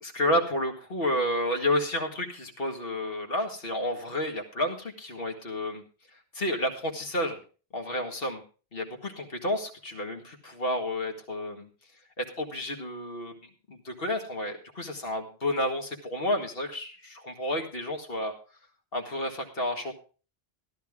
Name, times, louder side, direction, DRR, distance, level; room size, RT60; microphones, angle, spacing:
voice 1, 0.0-5.8 6.3-7.4 7.7-8.4 8.7-11.7 12.2-13.4 13.7-18.3 18.9-19.9, left 1 dB, 65° left, 2 dB, 2.2 m, -30 dB
14.0 x 11.5 x 3.7 m, 0.36 s
omnidirectional pair, 1.0 m